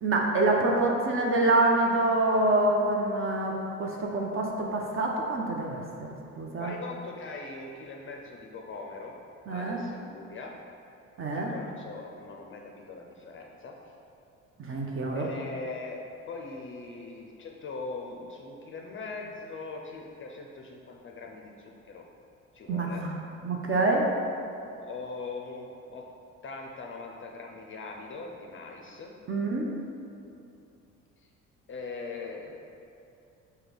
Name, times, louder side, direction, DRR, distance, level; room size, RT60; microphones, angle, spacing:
voice 1, 0.0-6.7 9.5-9.8 11.2-11.5 14.6-15.3 22.7-23.2 23.4-24.1 29.3-29.7, right 2 dB, 30° right, 0 dB, 0.7 m, -26 dB
voice 2, 6.6-9.2 9.5-10.5 11.3-13.7 15.1-22.0 22.5-23.0 24.8-26.1 26.4-29.1 31.7-32.6, left 3 dB, 30° left, 0 dB, 0.5 m, -41 dB
4.9 x 2.3 x 4.7 m, 2.7 s
hypercardioid pair, 55°, 40 cm